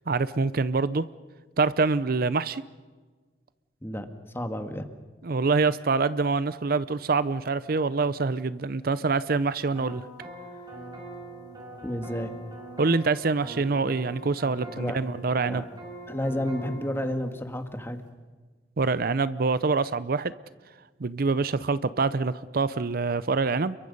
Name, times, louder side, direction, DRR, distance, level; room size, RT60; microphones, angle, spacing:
voice 1, 0.1-1.0 1.6-2.6 5.2-10.1 12.8-15.6 18.8-20.3 21.0-23.8, right 4 dB, 55° right, 16 dB, 0.6 m, -25 dB
voice 2, 4.3-4.9 11.8-12.3 14.8-15.0 15.4-15.6 16.1-18.0, left 1 dB, 15° left, 7 dB, 1.8 m, -31 dB
sound 1, 9.7-17.1, right 1 dB, 25° right, 5.3 m, -42 dB
30.0 x 23.0 x 5.4 m, 1.4 s
head